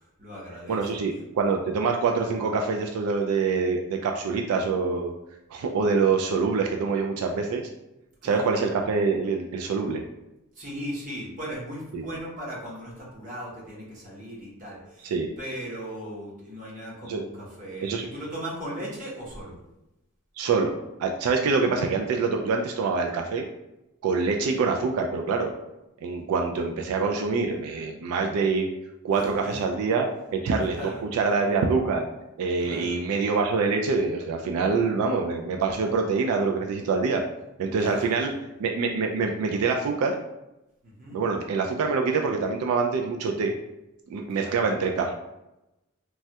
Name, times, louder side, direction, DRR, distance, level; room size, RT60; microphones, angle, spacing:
voice 1, 0.0-0.9 8.2-8.6 10.5-19.6 29.1-29.5 30.8-31.0 32.6-33.0 37.7-38.3 40.8-41.2 44.2-44.5, equal, 35° right, -5 dB, 0.9 m, -38 dB
voice 2, 0.7-5.1 5.5-7.7 8.2-10.0 11.9-12.0 15.0-15.3 17.0-17.2 17.8-18.1 20.4-20.7 21.0-23.5 24.0-25.5 26.0-28.7 29.0-30.8 31.1-32.1 32.4-37.2 37.6-38.3 38.6-40.1 41.1-43.5 44.1-45.2, right 4 dB, 85° right, 2 dB, 0.3 m, -25 dB
3.1 x 2.2 x 2.7 m, 0.93 s
head